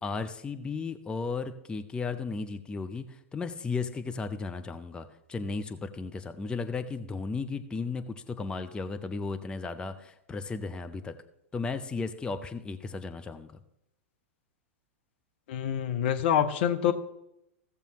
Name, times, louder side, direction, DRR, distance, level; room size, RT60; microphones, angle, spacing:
voice 1, 0.0-11.1 11.5-13.6, left 4 dB, 10° left, 8 dB, 0.7 m, -35 dB
voice 2, 15.5-16.9, left 9 dB, 50° left, 7 dB, 0.9 m, -26 dB
16.5 x 6.9 x 3.1 m, 0.83 s
figure-of-eight pair, 95°, 7 cm